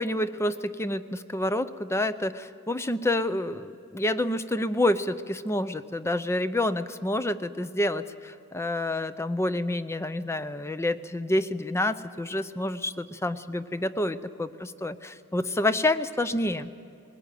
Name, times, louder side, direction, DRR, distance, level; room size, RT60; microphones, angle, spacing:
voice 1, 0.0-16.7, left 1 dB, 10° left, 13 dB, 0.6 m, -28 dB
21.0 x 18.0 x 9.2 m, 2.6 s
head